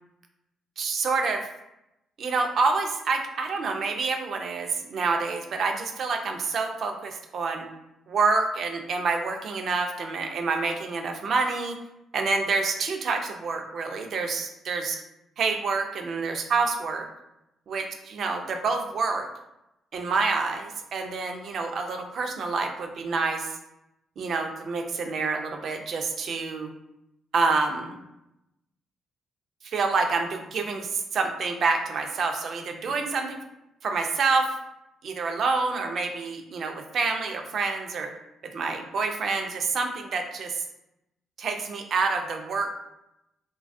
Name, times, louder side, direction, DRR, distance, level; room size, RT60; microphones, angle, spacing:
voice 1, 0.8-1.5 2.2-7.7 8.1-11.8 12.1-15.0 15.4-17.1 17.7-19.3 19.9-23.6 24.2-26.7 27.3-28.0 29.6-33.4 33.8-34.5 35.0-38.1 38.5-40.6 41.4-42.7, right 4 dB, 60° right, 4 dB, 0.4 m, -27 dB
3.2 x 2.2 x 2.5 m, 0.88 s
cardioid pair, 90°, 0 cm